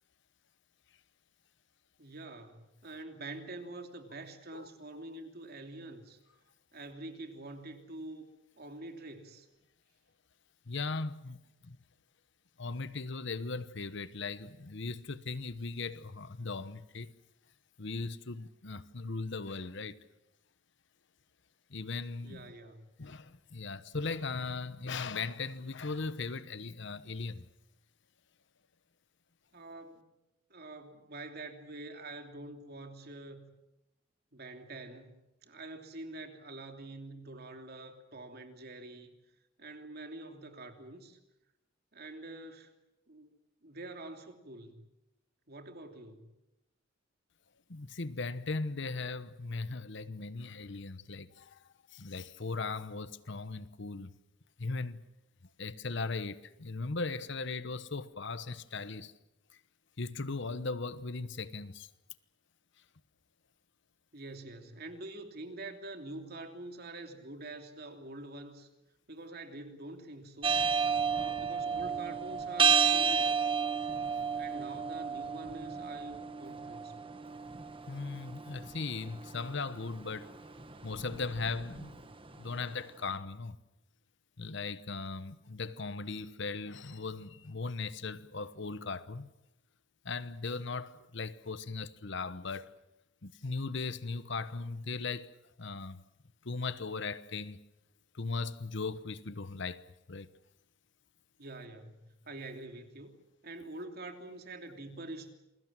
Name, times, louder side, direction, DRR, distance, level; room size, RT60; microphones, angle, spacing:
voice 1, 2.0-6.2 6.7-8.3 8.6-9.5 22.2-22.9 29.5-30.0 30.5-33.5 34.3-39.1 39.6-41.2 41.9-42.7 43.1-43.3 43.6-44.9 45.5-46.3 64.1-68.7 69.1-70.5 71.1-73.4 74.3-77.0 101.4-103.1 103.4-105.3, right 2 dB, 50° right, 3.0 m, -46 dB
voice 2, 10.7-11.8 12.6-17.1 17.8-20.0 21.7-22.5 23.0-27.5 47.7-51.6 51.9-54.1 54.6-55.0 55.6-59.1 60.0-61.9 74.0-74.2 77.9-80.3 80.8-81.9 82.3-83.6 84.4-89.3 90.0-92.7 93.2-95.3 95.6-96.0 96.4-97.6 98.1-100.3, left 4 dB, 60° left, 1.1 m, -38 dB
sound 1, 70.4-82.6, right 6 dB, 25° right, 1.3 m, -32 dB
28.0 x 22.0 x 7.5 m
head